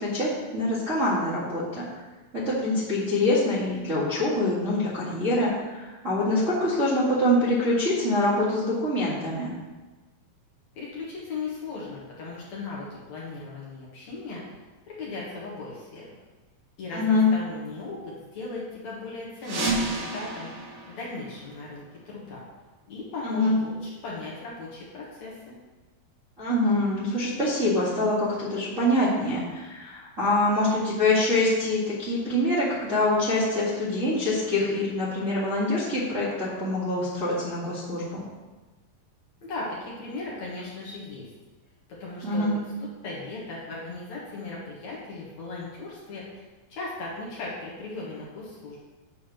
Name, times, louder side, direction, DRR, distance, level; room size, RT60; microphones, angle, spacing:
voice 1, 0.0-1.8 2.3-9.5 16.9-17.3 23.2-23.5 26.4-38.2 42.2-42.5, left 1 dB, 30° right, -11 dB, 1.7 m, -25 dB
voice 2, 10.7-14.4 14.9-16.1 16.8-20.5 20.9-22.4 22.9-25.5 39.4-41.3 41.9-42.5 42.8-46.4 46.7-48.8, left 3 dB, 60° left, -6 dB, 2.4 m, -37 dB
sound 1, 19.4-22.0, right 2 dB, 55° right, 1.3 m, -31 dB
9.2 x 3.6 x 5.9 m, 1.2 s
omnidirectional pair, 4.1 m